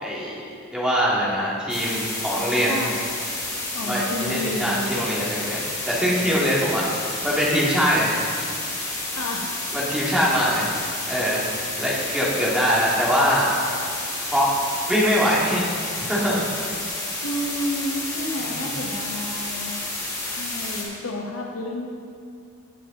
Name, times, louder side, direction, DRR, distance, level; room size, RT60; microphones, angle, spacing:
voice 1, 0.0-2.8 3.8-8.2 9.7-10.7 11.1-13.6 14.3-14.5 14.9-15.6 16.0-16.4 18.4-18.8, equal, 5° right, -7 dB, 2.1 m, -23 dB
sound 1, 1.7-20.8, left 2 dB, 15° left, 2.4 m, -30 dB
voice 2, 2.4-3.1 3.7-5.1 9.2-9.6 17.2-19.7 20.4-21.9, left 1 dB, 90° left, 1 dB, 1.3 m, -31 dB
17.5 x 7.2 x 3.8 m, 2.4 s
head